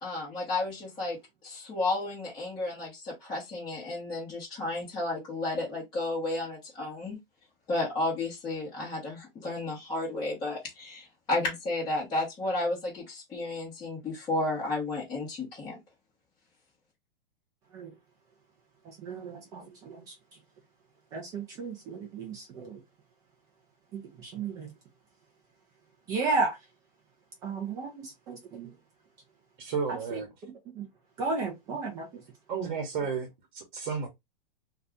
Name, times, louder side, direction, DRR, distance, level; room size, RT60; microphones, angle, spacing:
voice 1, 0.0-7.2 7.7-15.8, left 2 dB, 15° left, 1.0 m, -32 dB
voice 2, 18.8-20.1 21.1-22.8 23.9-24.7 26.1-26.6 27.4-28.7 30.1-30.2 30.7-30.9 31.2-32.2, right 3 dB, 15° right, 0.3 m, -34 dB
voice 3, 29.6-30.3 32.5-34.1, right 6 dB, 55° right, 0.9 m, -33 dB
2.6 x 2.3 x 3.5 m
hypercardioid pair, 150°, 29 cm